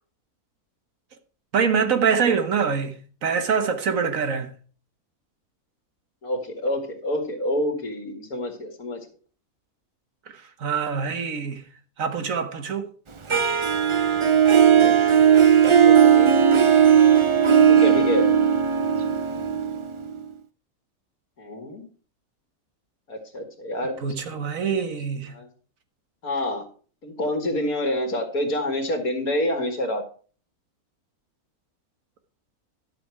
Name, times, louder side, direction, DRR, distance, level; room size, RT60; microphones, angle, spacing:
voice 1, 1.5-4.5 10.3-11.6 12.0-12.9 24.0-25.4, right 6 dB, 65° right, 1.6 m, -25 dB
voice 2, 6.2-9.0 14.7-15.0 15.8-16.4 17.7-18.3 21.4-21.9 23.1-24.1 24.9-25.0 25.3-25.5 26.2-26.7 27.0-30.0, left 1 dB, 75° left, 2.6 m, -27 dB
Harp, 13.3-20.2, right 8 dB, 40° right, 0.4 m, -17 dB
12.0 x 6.8 x 4.7 m
omnidirectional pair, 1.6 m